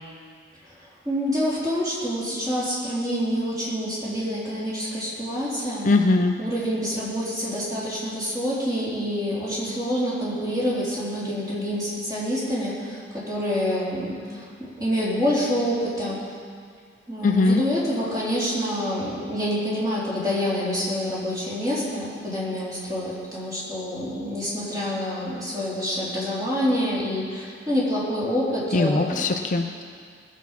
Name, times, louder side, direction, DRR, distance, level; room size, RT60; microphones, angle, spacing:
voice 1, 1.1-5.9 6.4-16.2 17.1-29.3, equal, 20° right, -8 dB, 4.1 m, -27 dB
voice 2, 5.8-6.4 17.2-17.6 28.7-29.8, left 2 dB, 45° left, 4 dB, 0.6 m, -20 dB
20.0 x 7.2 x 5.9 m, 2.1 s
head